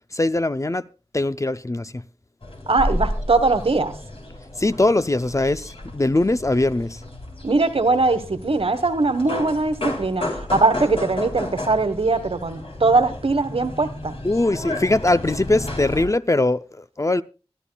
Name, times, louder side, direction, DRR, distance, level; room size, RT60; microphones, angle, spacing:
voice 1, 0.1-0.8 1.1-2.0 4.6-7.0 14.2-17.2, left 2 dB, 30° left, 0.5 m, -21 dB
sound 1, 2.4-16.1, left 1 dB, 65° left, 3.4 m, -32 dB
voice 2, 2.7-3.9 7.4-14.2, right 3 dB, 65° right, 1.4 m, -21 dB
25.5 x 12.0 x 2.3 m
wide cardioid pair, 45°, 11 cm